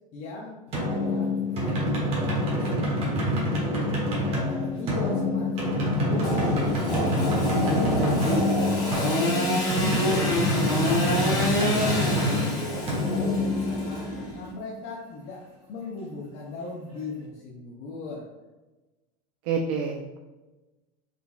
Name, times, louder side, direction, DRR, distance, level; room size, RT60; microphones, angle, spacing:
voice 1, 0.1-4.0 4.4-9.4 9.7-11.3 11.6-15.4 15.7-18.3, left 3 dB, 45° left, -4 dB, 0.7 m, -39 dB
sound 1, 0.7-14.3, left 1 dB, 35° right, 1.1 m, -26 dB
Engine / Sawing, 6.2-14.5, equal, 20° left, 1.1 m, -27 dB
voice 2, 19.4-20.2, right 5 dB, 70° right, 1 dB, 0.5 m, -30 dB
3.8 x 3.3 x 2.3 m, 1.1 s
supercardioid pair, 145°, 18 cm